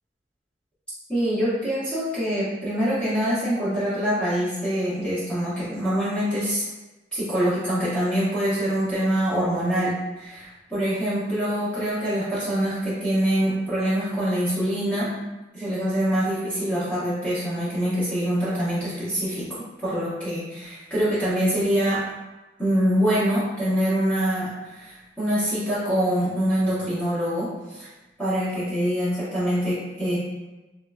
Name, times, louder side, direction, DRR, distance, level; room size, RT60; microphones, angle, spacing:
voice 1, 1.1-6.6 7.1-15.1 15.5-22.0 22.6-27.9 28.2-30.2, equal, 5° left, -14 dB, 1.1 m, -25 dB
3.1 x 2.9 x 2.4 m, 1.1 s
head